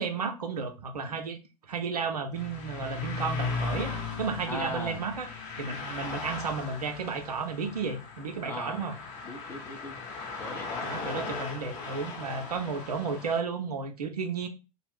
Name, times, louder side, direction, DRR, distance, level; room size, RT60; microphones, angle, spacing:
voice 1, 0.0-1.4 1.7-3.9 4.2-5.3 5.6-8.9 10.8-14.5, right 5 dB, 70° right, 0.6 m, -33 dB
sound 1, 2.3-13.4, left 4 dB, 30° left, 0.8 m, -37 dB
voice 2, 4.4-5.0 8.4-8.9 9.2-10.0 10.4-10.9, left 2 dB, 10° left, 0.5 m, -38 dB
2.4 x 2.0 x 3.4 m
figure-of-eight pair, 95°, 21 cm